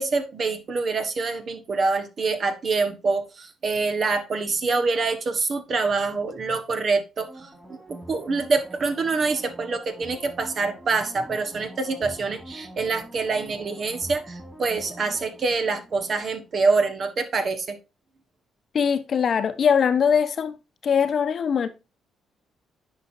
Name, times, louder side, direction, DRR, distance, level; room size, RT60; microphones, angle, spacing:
voice 1, 0.0-17.8, right 4 dB, 50° right, 1.4 m, -26 dB
sound 1, 7.3-16.7 17.0-17.1, right 1 dB, 10° right, 2.7 m, -44 dB
voice 2, 18.7-20.6 20.8-21.7, left 7 dB, 55° left, 0.9 m, -21 dB
9.9 x 5.0 x 2.7 m
hypercardioid pair, 50°, 0 cm